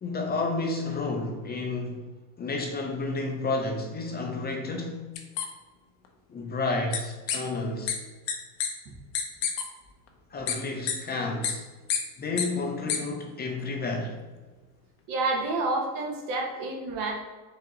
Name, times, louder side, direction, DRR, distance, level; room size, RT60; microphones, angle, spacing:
voice 1, 0.0-2.0 2.4-5.1 6.3-8.0 10.3-11.6 12.2-14.2, left 3 dB, 25° left, 0.6 m, -31 dB
sound 1, 5.2-5.4 6.9-7.0 7.3-7.4 7.9-8.0 8.3-8.4 8.6-8.7 9.1-9.6 10.5-10.6 10.9-11.0 11.4-11.5 11.9-12.0 12.4-12.5 12.9-13.0, left 8 dB, 65° left, 0.9 m, -27 dB
voice 2, 15.1-17.1, right 2 dB, 60° right, 1.2 m, -29 dB
4.8 x 2.8 x 3.8 m
supercardioid pair, 105°, 38 cm